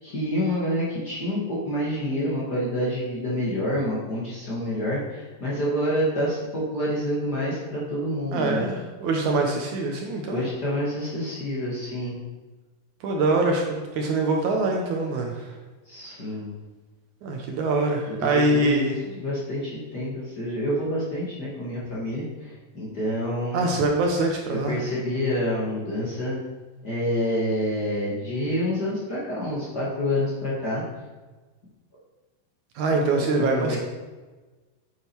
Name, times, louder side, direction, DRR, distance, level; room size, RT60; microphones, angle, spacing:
voice 1, 0.0-8.7 10.3-12.2 15.9-16.5 18.3-23.7 24.5-26.4 26.8-30.8 33.4-33.8, equal, 35° left, -6 dB, 2.0 m, -28 dB
voice 2, 8.3-10.4 13.0-15.6 17.2-18.9 23.5-24.8 32.8-33.8, right 2 dB, 70° right, 1 dB, 2.1 m, -24 dB
9.0 x 8.8 x 4.5 m, 1.3 s
omnidirectional pair, 4.0 m